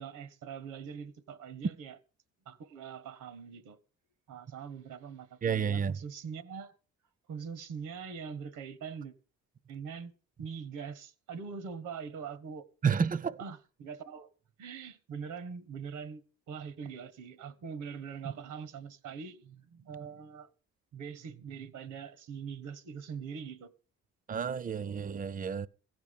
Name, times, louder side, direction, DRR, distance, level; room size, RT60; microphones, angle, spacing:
voice 1, 0.0-2.0 2.4-3.8 4.3-6.8 7.3-9.1 9.7-10.1 10.4-12.7 13.4-14.3 14.6-20.5 20.9-23.7, right 6 dB, 80° right, 1.4 m, -43 dB
voice 2, 5.4-5.9 12.8-13.4 24.3-25.7, right 6 dB, 30° right, 0.6 m, -30 dB
15.5 x 6.0 x 6.9 m
cardioid pair, 90°, 30 cm